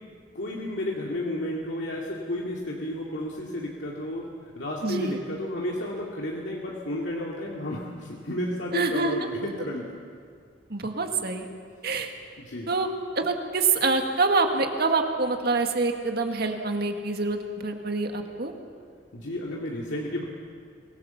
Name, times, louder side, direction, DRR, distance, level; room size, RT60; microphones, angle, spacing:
voice 1, 0.3-4.3 4.5-9.8 12.4-12.7 19.1-20.2, left 1 dB, 75° left, -3 dB, 2.3 m, -32 dB
voice 2, 4.8-5.2 8.7-9.1 10.7-11.5 11.8-12.1 12.7-12.9 13.2-18.5, right 3 dB, 60° right, 4 dB, 2.0 m, -26 dB
24.5 x 18.5 x 7.1 m, 2.2 s
head